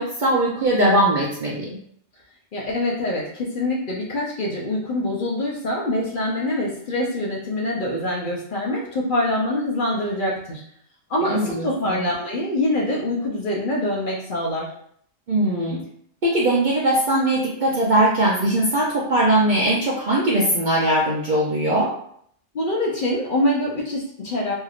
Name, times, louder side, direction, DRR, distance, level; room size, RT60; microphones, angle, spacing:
voice 1, 0.0-1.7 11.2-12.1 15.3-15.8 16.2-21.9, right 1 dB, 55° right, -4 dB, 0.5 m, -20 dB
voice 2, 2.5-10.6 11.1-14.7 22.5-24.5, left 1 dB, 55° left, -4 dB, 0.7 m, -24 dB
3.1 x 2.7 x 2.4 m, 0.68 s
omnidirectional pair, 1.3 m